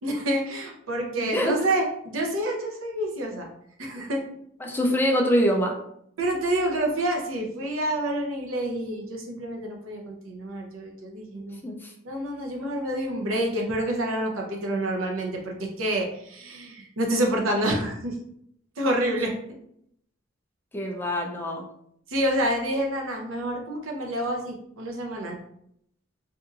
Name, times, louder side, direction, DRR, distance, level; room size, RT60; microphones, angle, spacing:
voice 1, 0.0-3.5 3.8-4.2 6.2-11.6 12.0-18.1 18.8-19.6 22.1-25.4, right 1 dB, 80° right, 0 dB, 0.7 m, -28 dB
voice 2, 1.2-1.7 4.6-5.7 11.6-11.9 20.7-21.6, equal, 10° left, 1 dB, 0.3 m, -24 dB
2.8 x 2.6 x 2.4 m, 0.71 s
head